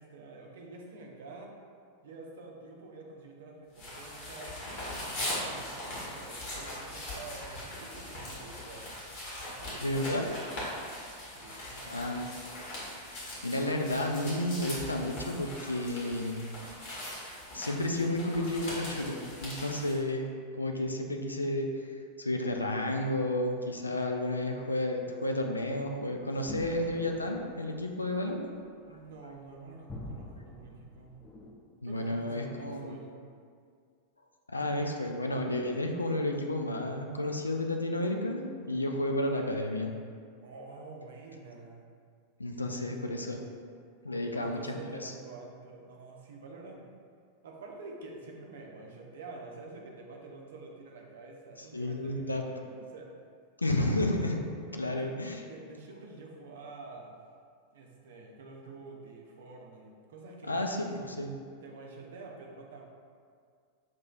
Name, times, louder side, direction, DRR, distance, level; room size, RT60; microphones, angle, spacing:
voice 1, 0.0-1.5 2.0-9.2 9.4-10.7 11.3-12.2 28.9-31.2 31.8-33.2 38.8-39.1 40.4-41.9 42.7-43.1 44.3-46.9 47.4-53.2 54.8-57.2 57.7-60.6 61.6-62.8, right 3 dB, 60° right, 0 dB, 0.6 m, -48 dB
sound 1, 3.8-20.0, left 1 dB, 45° left, 1.5 m, -40 dB
voice 2, 9.8-10.4 11.9-12.3 13.2-16.5 17.5-20.3 20.6-21.7 22.2-28.5 31.8-33.0 34.5-39.9 42.4-43.4 44.0-44.6 45.0-45.1 51.7-52.4 53.6-54.4 54.7-55.4 60.5-61.4, left 1 dB, 80° left, 3 dB, 0.3 m, -31 dB
sound 2, 26.2-31.5, left 2 dB, 20° left, 0.5 m, -46 dB
5.8 x 3.0 x 2.3 m, 2.1 s
figure-of-eight pair, 90°, 0 cm